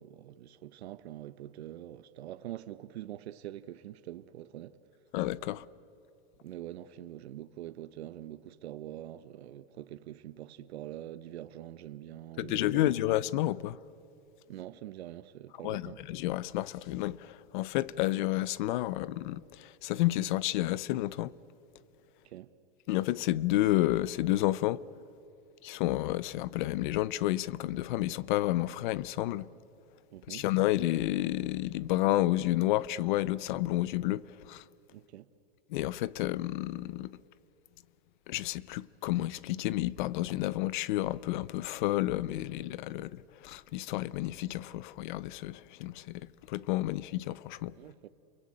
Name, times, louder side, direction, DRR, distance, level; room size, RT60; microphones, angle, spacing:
voice 1, 0.0-4.8 6.4-13.1 14.5-16.1 22.2-22.5 30.1-30.5 34.9-35.3 47.7-48.1, right 13 dB, 80° right, 1.0 m, -44 dB
voice 2, 5.1-5.6 12.4-13.8 15.6-21.3 22.9-24.8 25.6-29.5 30.3-34.2 34.5-34.6 35.7-37.2 38.3-46.2 46.5-47.7, left 16 dB, 50° left, 0.7 m, -30 dB
29.5 x 23.0 x 8.7 m
supercardioid pair, 155°, 32 cm